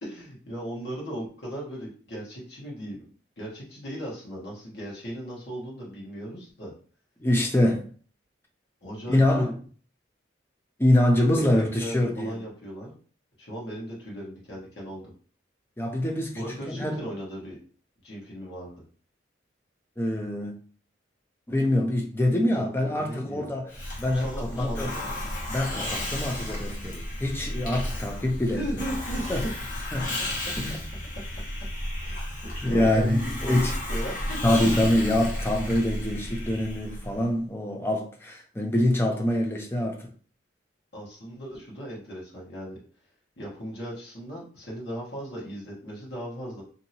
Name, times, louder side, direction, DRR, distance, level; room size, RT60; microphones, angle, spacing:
voice 1, 0.0-3.0 3.4-6.7 8.8-9.5 11.3-12.9 13.4-15.0 16.3-17.6 18.0-18.7 22.5-23.5 24.0-24.9 28.5-29.5 32.0-33.5 33.9-34.4 40.9-42.8 43.4-46.6, equal, 65° left, 1.2 m, -37 dB
voice 2, 7.2-7.9 9.1-9.5 10.8-12.4 15.8-17.0 20.0-20.5 21.5-23.7 24.0-24.9 25.5-28.7 29.3-29.4 29.9-30.2 30.6-30.8 32.6-33.7 34.4-40.1, left 1 dB, 10° left, 0.5 m, -25 dB
Hiss, 23.7-37.2, left 1 dB, 45° left, 0.9 m, -33 dB
2.7 x 2.7 x 2.8 m
head